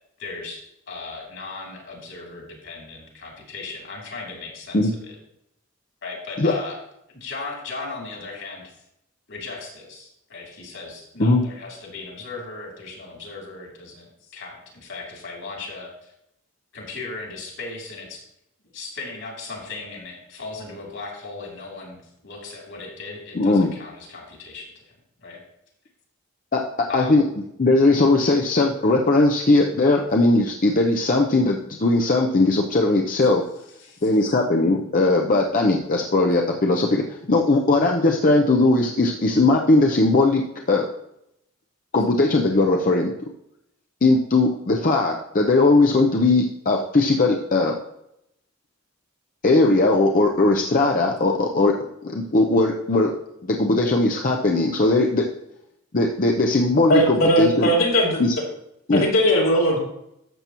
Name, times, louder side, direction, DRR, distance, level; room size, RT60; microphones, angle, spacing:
voice 1, 0.2-5.1 6.0-6.8 7.1-8.8 9.3-16.1 16.7-18.2 18.7-24.9 25.2-25.4 26.9-27.2 33.8-34.2, left 3 dB, 65° left, -2 dB, 3.1 m, -37 dB
voice 2, 23.3-23.7 26.5-26.6 26.9-27.2 27.6-33.4 34.0-37.0 37.3-40.4 40.7-40.8 41.9-43.1 44.0-47.7 49.4-51.7 52.1-53.1 53.4-55.2 55.9-57.7 58.2-58.3 58.9-59.0, left 2 dB, 40° left, 1 dB, 0.7 m, -19 dB
voice 3, 56.9-58.2 58.9-59.8, equal, 80° left, -4 dB, 3.1 m, -19 dB
12.5 x 7.4 x 3.0 m, 0.79 s
head